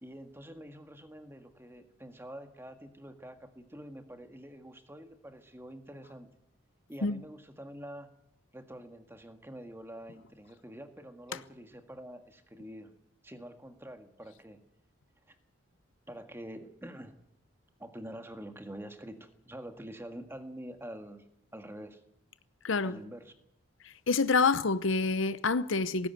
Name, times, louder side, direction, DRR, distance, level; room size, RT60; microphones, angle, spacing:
voice 1, 0.0-6.3 6.9-8.1 8.5-12.9 13.2-14.6 15.3-15.4 16.1-17.2 17.8-21.2 21.5-22.0 22.8-23.3, equal, 10° right, 1.7 m, -46 dB
voice 2, 22.6-23.0 24.1-26.1, left 4 dB, 65° left, 0.8 m, -27 dB
18.0 x 16.0 x 9.3 m
head